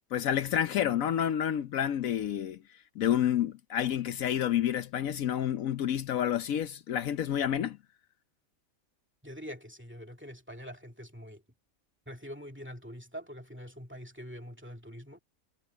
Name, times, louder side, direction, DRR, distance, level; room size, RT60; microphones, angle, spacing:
voice 1, 0.1-2.6 3.0-7.8, left 10 dB, 75° left, 1.1 m, -29 dB
voice 2, 9.2-11.4 12.1-15.2, equal, 10° right, 2.3 m, -44 dB
omnidirectional pair, 1.5 m